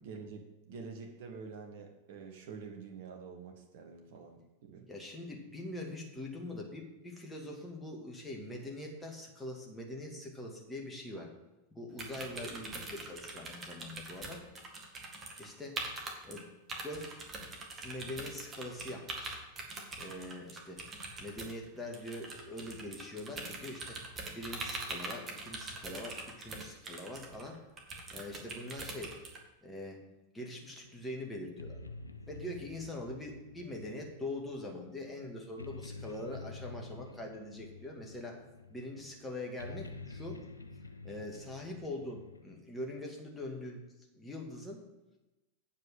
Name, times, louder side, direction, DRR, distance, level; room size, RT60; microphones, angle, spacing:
voice 1, 0.0-4.9, right 5 dB, 50° right, 3 dB, 1.4 m, -47 dB
voice 2, 4.9-11.3 11.7-14.4 15.4-15.8 16.2-16.4 16.8-17.2 17.8-19.4 20.0-20.8 21.2-24.0 24.3-27.6 28.1-29.1 29.6-30.0 30.3-31.8 32.3-38.4 38.7-40.5 41.0-43.8 44.1-44.8, left 1 dB, 10° left, 0 dB, 2.1 m, -43 dB
sound 1, 12.0-15.5 15.8-16.4 16.7-29.4, right 3 dB, 20° right, 1.9 m, -43 dB
sound 2, 30.8-42.6, left 3 dB, 80° left, 0.5 m, -49 dB
8.3 x 5.1 x 7.4 m, 1.0 s
figure-of-eight pair, 90°, 0 cm